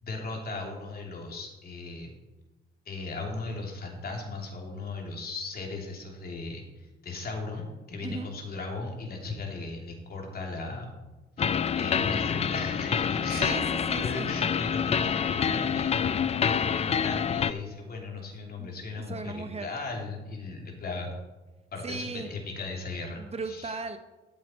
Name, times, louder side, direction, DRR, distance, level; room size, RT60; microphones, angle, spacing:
voice 1, 0.0-2.1 2.8-10.9 11.7-13.5 13.9-21.1 21.7-23.7, left 3 dB, 50° left, 0 dB, 2.8 m, -37 dB
sound 1, 11.4-17.5, left 7 dB, 30° left, 0.4 m, -27 dB
voice 2, 13.3-14.3 18.6-19.7 20.5-20.6 21.8-22.3 23.2-24.0, right 4 dB, 30° right, 8 dB, 0.8 m, -37 dB
13.0 x 7.4 x 4.4 m, 1.1 s
cardioid pair, 90°, 20 cm